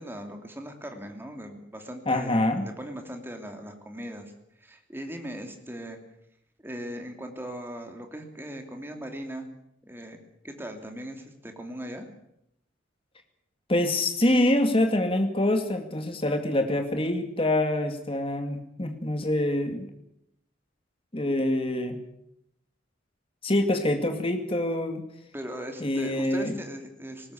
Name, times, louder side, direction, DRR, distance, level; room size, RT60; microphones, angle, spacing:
voice 1, 0.0-4.3 4.6-6.0 6.6-9.5 9.8-10.2 10.4-12.1 25.3-27.3, equal, 10° right, 4 dB, 2.8 m, -39 dB
voice 2, 2.1-2.7 13.7-19.9 21.1-22.0 23.4-25.0 25.8-26.6, left 1 dB, 30° left, 6 dB, 2.2 m, -25 dB
19.5 x 19.0 x 8.5 m, 0.77 s
head